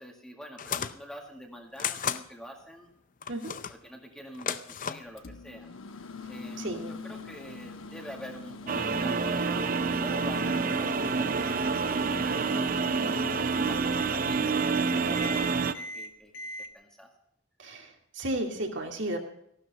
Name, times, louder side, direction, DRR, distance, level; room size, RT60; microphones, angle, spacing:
voice 1, 0.0-2.9 3.8-5.7 6.3-13.3 13.6-16.3 16.6-17.1, equal, 5° left, 1 dB, 1.9 m, -46 dB
sound 1, 0.6-1.0 1.8-2.2 3.2-3.8 4.3-5.1, left 8 dB, 40° left, 0.5 m, -33 dB
Microwave oven, 5.2-16.7, left 2 dB, 80° left, 1.0 m, -43 dB
voice 2, 6.6-6.9 10.4-10.5 17.6-19.2, right 1 dB, 65° right, 1 dB, 2.5 m, -33 dB
sound 2, 8.7-15.7, right 4 dB, 45° right, 0.6 m, -28 dB
15.0 x 12.0 x 4.2 m, 0.72 s
head